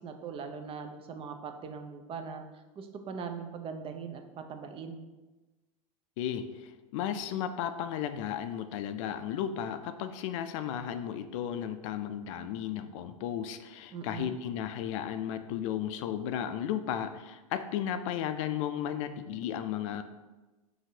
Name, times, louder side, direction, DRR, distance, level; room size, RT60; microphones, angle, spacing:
voice 1, 0.0-2.4 2.8-5.0 13.9-14.3, right 6 dB, 30° right, 6 dB, 0.5 m, -40 dB
voice 2, 6.2-20.0, left 9 dB, 60° left, 9 dB, 0.4 m, -34 dB
5.8 x 2.7 x 2.7 m, 1.2 s
hypercardioid pair, 100°, 18 cm